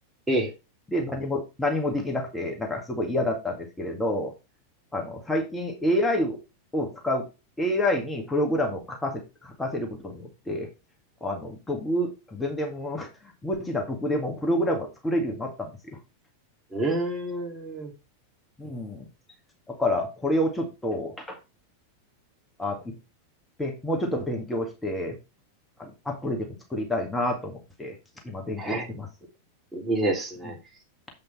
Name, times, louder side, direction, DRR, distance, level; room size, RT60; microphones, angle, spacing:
voice 1, 0.9-4.3 4.9-6.4 6.7-7.3 7.6-10.7 11.2-13.1 13.4-15.7 18.6-19.1 19.7-21.4 22.6-22.9 23.6-25.2 25.8-28.0 28.2-29.1 30.4-30.5, left 1 dB, 10° left, 2 dB, 1.9 m, -28 dB
voice 2, 16.7-17.9 28.6-28.9 29.7-30.5, right 1 dB, 10° right, 0 dB, 2.7 m, -27 dB
7.9 x 5.4 x 4.1 m, 0.27 s
figure-of-eight pair, 90°, 0 cm